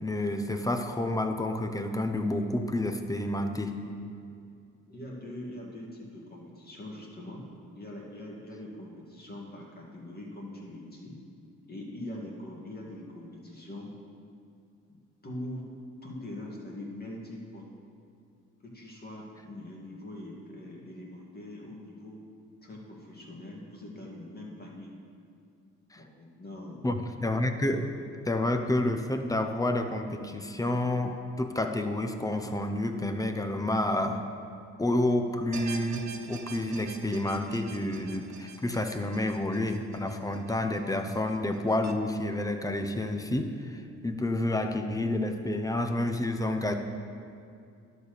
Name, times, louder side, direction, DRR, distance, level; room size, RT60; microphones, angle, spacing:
voice 1, 0.0-3.8 25.9-26.0 26.8-27.9 28.3-34.2 34.8-46.7, left 1 dB, 10° left, 6 dB, 0.7 m, -29 dB
voice 2, 4.9-7.5 7.7-11.2 11.7-14.0 15.2-15.7 16.0-17.7 18.6-22.2 22.6-24.9 25.9-26.8, left 1 dB, 30° left, -3 dB, 2.1 m, -42 dB
sound 1, 35.5-41.9, right 7 dB, 65° right, 0.7 m, -45 dB
11.5 x 4.2 x 6.7 m, 2.4 s
cardioid pair, 90°, 30 cm